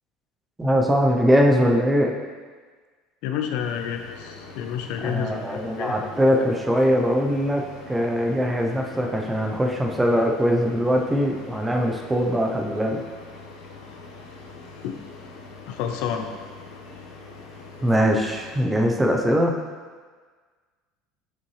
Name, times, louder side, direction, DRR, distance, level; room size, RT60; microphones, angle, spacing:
voice 1, 0.6-2.1 5.0-13.0 17.8-19.6, equal, 10° right, 1 dB, 0.6 m, -21 dB
voice 2, 3.2-6.1 14.8-15.0 15.7-16.3, left 8 dB, 65° left, 5 dB, 0.6 m, -29 dB
sound 1, 3.6-18.6, left 3 dB, 90° left, 1.1 m, -43 dB
7.4 x 5.8 x 3.2 m, 1.5 s
cardioid pair, 160°, 0 cm